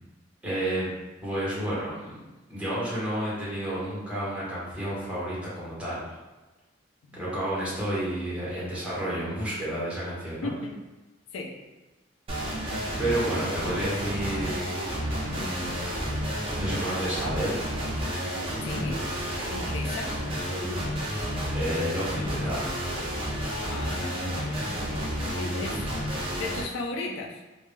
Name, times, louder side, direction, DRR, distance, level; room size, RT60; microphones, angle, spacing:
voice 1, 0.4-0.9 1.2-2.2 2.5-6.0 7.1-10.5 13.0-14.6 15.3-15.7 16.5-17.6 20.6-21.2 21.5-22.7, right 1 dB, 5° right, -8 dB, 0.9 m, -31 dB
voice 2, 10.4-10.8 11.3-11.5 18.6-19.0 19.5-20.1 23.6-25.1 25.3-25.9 26.4-27.4, left 2 dB, 90° left, 0 dB, 0.4 m, -36 dB
sound 1, 12.3-26.6, equal, 30° right, 0.4 m, -31 dB
2.2 x 2.0 x 3.1 m, 1.1 s
head